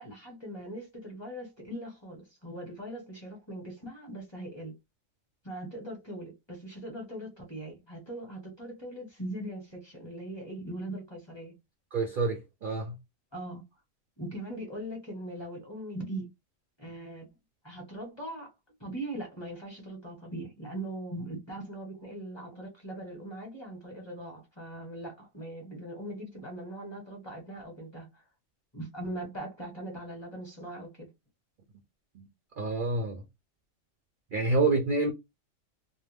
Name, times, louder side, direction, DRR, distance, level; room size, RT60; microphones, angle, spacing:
voice 1, 0.0-4.7 5.4-11.5 13.3-13.7 14.2-16.2 16.8-17.3 17.6-18.5 18.8-28.1 28.7-31.1, right 1 dB, 20° left, 1.1 m, -40 dB
voice 2, 11.9-13.0 32.1-32.3 32.6-33.2 34.3-35.1, right 3 dB, 55° right, 0.6 m, -28 dB
2.6 x 2.0 x 3.2 m
omnidirectional pair, 1.4 m